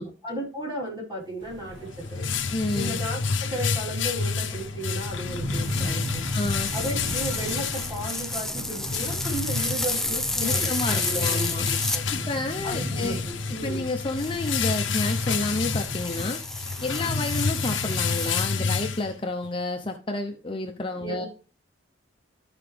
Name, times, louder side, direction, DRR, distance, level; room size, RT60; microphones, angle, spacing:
voice 1, 0.0-1.8 2.1-2.3 2.7-6.2 6.7-12.2 12.6-13.9 21.0-21.3, right 1 dB, 20° right, -4 dB, 3.8 m, -35 dB
sound 1, 1.4-16.0, right 1 dB, 70° right, 1.5 m, -39 dB
sound 2, 1.6-19.5, left 5 dB, 70° left, 0.8 m, -29 dB
voice 2, 2.5-3.0 6.3-6.7 10.4-11.7 12.1-13.2 13.5-16.4 16.8-21.3, left 2 dB, 25° left, 3 dB, 0.7 m, -30 dB
sound 3, 5.5-12.0 14.2-18.4, left 1 dB, ahead, 0.3 m, -32 dB
13.0 x 4.9 x 3.3 m, 0.35 s
head